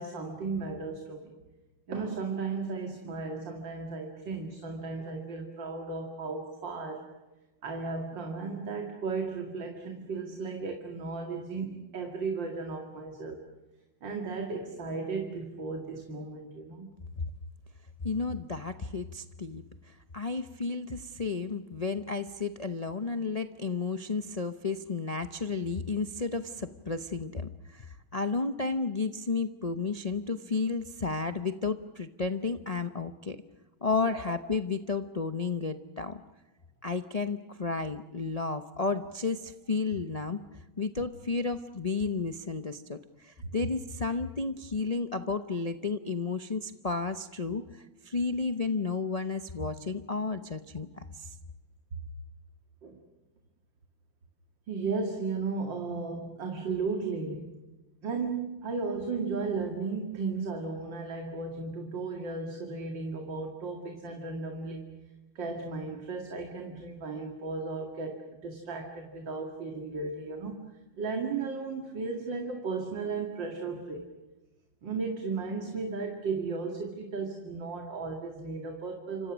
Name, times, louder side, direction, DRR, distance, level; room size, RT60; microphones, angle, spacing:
voice 1, 0.0-1.3 1.9-7.1 7.6-13.4 14.0-16.9 43.4-43.5 52.8-53.0 54.7-57.6 58.0-64.9 65.3-70.6 71.0-74.1 74.8-79.3, right 4 dB, 65° right, 3 dB, 2.9 m, -35 dB
voice 2, 18.0-33.4 33.8-36.2 36.8-40.4 40.8-51.4, left 4 dB, 80° left, 8 dB, 0.3 m, -32 dB
29.5 x 26.0 x 6.2 m, 1.1 s
omnidirectional pair, 2.2 m